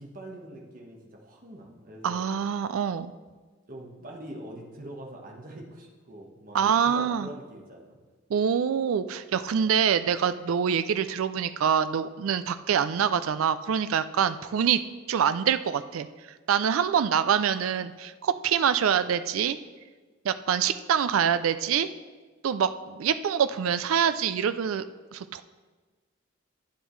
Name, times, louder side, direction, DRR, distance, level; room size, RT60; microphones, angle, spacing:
voice 1, 0.0-2.2 3.7-8.0, right 1 dB, 40° right, -1 dB, 1.3 m, -44 dB
voice 2, 2.0-3.1 6.5-7.3 8.3-14.8 15.1-16.1 16.5-19.6 20.2-21.9 22.4-24.9 25.1-25.4, right 8 dB, 85° right, 12 dB, 0.4 m, -25 dB
11.5 x 9.1 x 3.2 m, 1.4 s
head